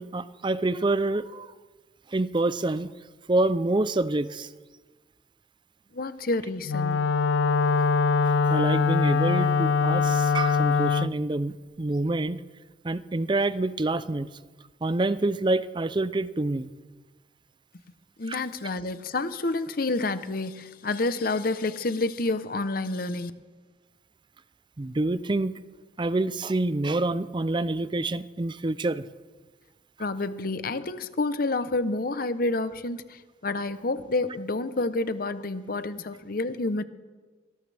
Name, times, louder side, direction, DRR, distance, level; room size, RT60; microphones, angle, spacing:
voice 1, 0.0-1.5 2.1-2.9 3.3-4.5 8.5-12.4 12.8-14.3 14.8-16.7 18.3-18.4 24.8-25.5 26.0-29.1, right 2 dB, 25° right, 15 dB, 0.5 m, -27 dB
voice 2, 5.9-7.0 18.2-23.3 30.0-33.2 33.4-36.8, left 2 dB, 55° left, 12 dB, 0.8 m, -29 dB
Wind instrument woodwind instrument, 6.6-11.1, left 5 dB, 85° left, 0.4 m, -23 dB
22.5 x 18.0 x 3.4 m, 1.4 s
head